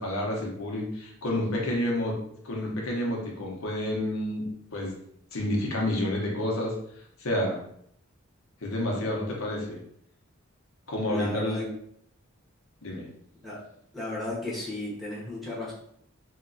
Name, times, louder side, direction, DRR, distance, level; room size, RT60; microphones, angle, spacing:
voice 1, 0.0-2.2 2.4-4.5 4.7-5.0 5.3-6.8 7.2-7.6 8.6-9.8 10.9-11.7 12.8-13.1, left 1 dB, 80° left, -2 dB, 0.8 m, -29 dB
voice 2, 11.1-11.6 13.4-13.6 13.9-15.7, left 1 dB, ahead, -8 dB, 1.1 m, -34 dB
2.9 x 2.8 x 2.6 m, 0.69 s
head